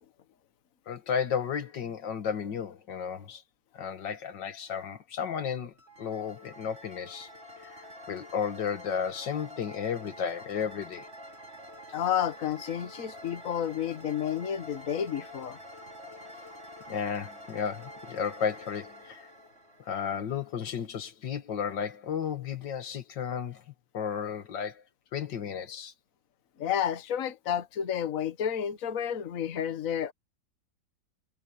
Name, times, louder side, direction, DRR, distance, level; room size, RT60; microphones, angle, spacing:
voice 1, 0.9-3.4 3.7-7.3 7.6-11.1 16.9-19.3 19.9-23.6 23.9-24.8 25.1-25.9, left 7 dB, 85° left, 2.2 m, -33 dB
sound 1, 5.7-20.6, equal, 35° right, 3.9 m, -47 dB
voice 2, 11.9-15.6 26.6-30.1, left 9 dB, 50° left, 1.6 m, -31 dB
omnidirectional pair, 1.9 m